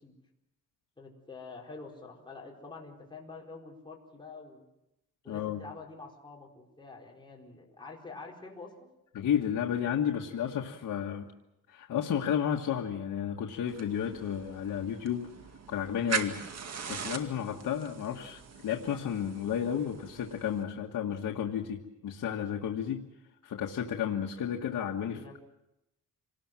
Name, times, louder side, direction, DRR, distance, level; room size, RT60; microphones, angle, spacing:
voice 1, 1.0-4.6 5.2-8.9 25.1-25.4, left 3 dB, 15° left, -2 dB, 4.6 m, -47 dB
voice 2, 5.3-5.6 9.1-11.3 11.7-15.3 15.7-23.0 23.4-25.2, left 9 dB, 75° left, 1 dB, 1.7 m, -32 dB
sound 1, 13.7-20.6, right 6 dB, 55° right, 2.2 m, -40 dB
26.5 x 19.5 x 7.6 m, 0.88 s
cardioid pair, 120°, 32 cm